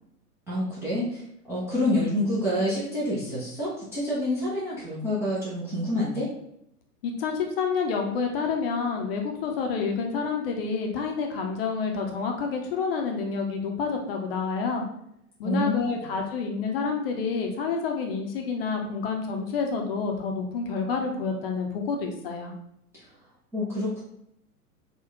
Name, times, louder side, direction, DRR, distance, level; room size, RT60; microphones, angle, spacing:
voice 1, 0.5-1.2 1.5-6.3 15.4-15.7 23.5-24.0, left 1 dB, 5° right, -11 dB, 0.5 m, -27 dB
voice 2, 7.0-14.8 15.4-22.5, left 5 dB, 40° left, 2 dB, 0.7 m, -28 dB
3.7 x 2.2 x 3.5 m, 0.77 s
figure-of-eight pair, 105°, 46 cm